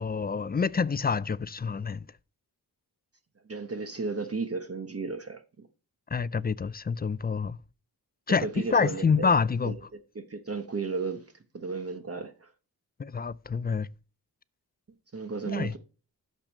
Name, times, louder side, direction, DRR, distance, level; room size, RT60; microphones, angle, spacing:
voice 1, 0.0-2.1 6.1-7.6 8.3-9.7 13.0-13.9 15.5-15.7, left 5 dB, 25° left, 0.4 m, -27 dB
voice 2, 3.5-5.4 8.4-9.3 9.6-9.7 10.1-11.2 11.5-12.5 15.1-15.8, right 4 dB, 40° right, 1.2 m, -34 dB
6.7 x 5.9 x 6.4 m
wide cardioid pair, 75°, 37 cm